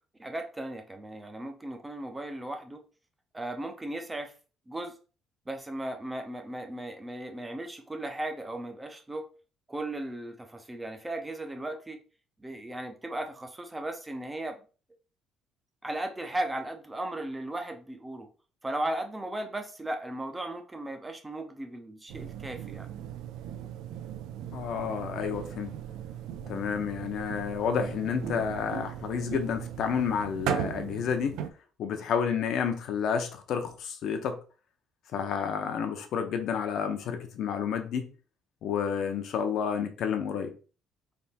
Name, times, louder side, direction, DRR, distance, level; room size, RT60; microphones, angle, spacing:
voice 1, 0.2-2.8 3.3-4.3 4.7-4.9 5.5-9.3 9.7-12.0 12.4-14.6 15.8-18.3 18.6-22.9, right 1 dB, 10° right, 0.5 m, -36 dB
sound 1, 22.1-31.5, right 9 dB, 90° right, 0.4 m, -37 dB
voice 2, 24.5-25.7 26.5-31.4 31.8-34.4 35.1-38.1 38.6-40.5, left 7 dB, 60° left, 0.7 m, -30 dB
3.4 x 3.0 x 4.2 m
cardioid pair, 160°, 0 cm